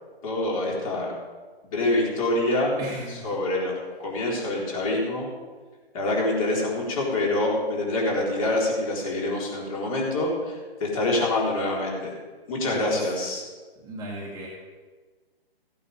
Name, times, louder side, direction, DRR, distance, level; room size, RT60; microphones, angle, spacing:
voice 1, 0.2-1.1 1.7-2.7 3.2-5.3 5.9-10.3 10.8-12.1 12.5-13.4, left 2 dB, 35° left, -3 dB, 4.1 m, -25 dB
voice 2, 2.8-3.4 12.6-13.0 13.8-14.5, right 1 dB, 10° right, -5 dB, 1.6 m, -37 dB
15.5 x 8.7 x 5.5 m, 1.4 s
hypercardioid pair, 150°, 31 cm